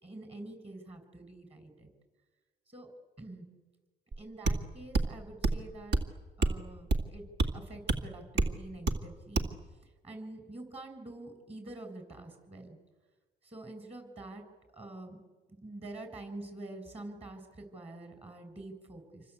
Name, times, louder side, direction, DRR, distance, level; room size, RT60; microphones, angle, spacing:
voice 1, 0.0-1.9 2.7-2.9 3.2-3.5 4.2-6.0 6.4-7.2 7.5-9.5 10.0-12.8 13.4-14.4 14.7-15.2 15.6-19.2, right 2 dB, 30° right, 5 dB, 7.0 m, -46 dB
sound 1, 4.1-4.2 4.5-4.6 4.9-5.1 5.4-5.6 5.9-6.1 6.4-6.6 6.9-7.1 7.4-7.5 7.9-8.0 8.4-8.5 8.9-9.0 9.4-9.5, right 2 dB, 60° right, 2.2 m, -27 dB
27.5 x 24.5 x 8.4 m, 1.3 s
cardioid pair, 90°, 20 cm